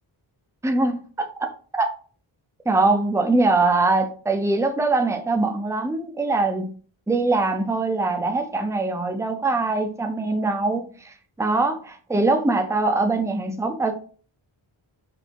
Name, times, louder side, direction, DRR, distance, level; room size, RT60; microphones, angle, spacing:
voice 1, 0.6-1.9 2.7-6.7 7.1-13.9, right 3 dB, 5° right, 0.5 m, -22 dB
4.2 x 2.7 x 2.9 m
wide cardioid pair, 95°, 49 cm